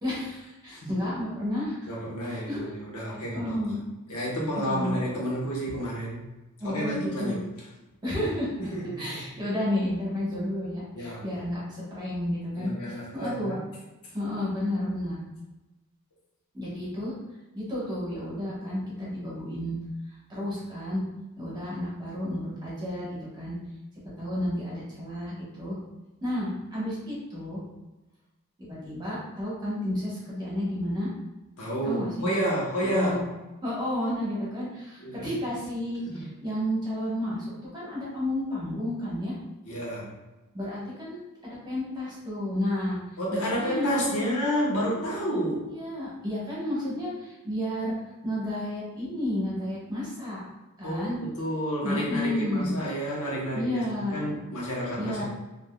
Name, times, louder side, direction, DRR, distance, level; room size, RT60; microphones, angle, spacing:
voice 1, 0.0-1.9 2.2-2.7 3.1-3.8 4.6-5.0 6.6-7.4 8.0-8.5 9.0-13.5 14.1-15.2 16.5-17.1 17.5-19.8 20.3-21.0 21.3-23.5 24.2-25.8 26.2-27.6 28.6-31.1 31.8-32.3 32.8-33.2 33.6-37.4 37.7-39.4 40.5-43.0 43.3-44.3 45.5-48.0 48.2-50.4 50.8-51.2 51.8-52.7 53.5-54.3 55.0-55.2, left 1 dB, 20° right, -8 dB, 1.1 m, -31 dB
voice 2, 1.8-3.8 4.1-6.2 6.6-7.4 8.6-9.2 10.9-11.4 12.5-13.6 31.6-33.2 35.0-35.3 36.1-36.3 39.6-40.1 43.2-45.7 50.8-55.2, equal, 80° left, -4 dB, 1.0 m, -30 dB
3.4 x 2.6 x 2.2 m, 1.1 s
head